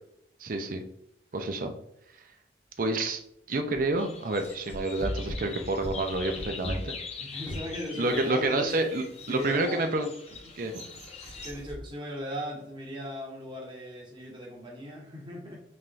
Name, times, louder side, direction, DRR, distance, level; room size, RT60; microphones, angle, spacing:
voice 1, 0.4-0.8 1.3-1.8 2.8-3.2 3.5-7.0 8.0-10.1 10.6-10.9, right 2 dB, 50° right, 5 dB, 0.6 m, -29 dB
sound 1, 4.0-11.5, left 5 dB, 35° left, 0.6 m, -43 dB
sound 2, 4.4-9.8 10.3-11.8, equal, 20° left, 1.2 m, -40 dB
voice 2, 7.2-8.8 9.3-9.9 11.2-15.6, equal, 30° right, -3 dB, 1.2 m, -38 dB
4.3 x 3.5 x 2.5 m, 0.75 s
head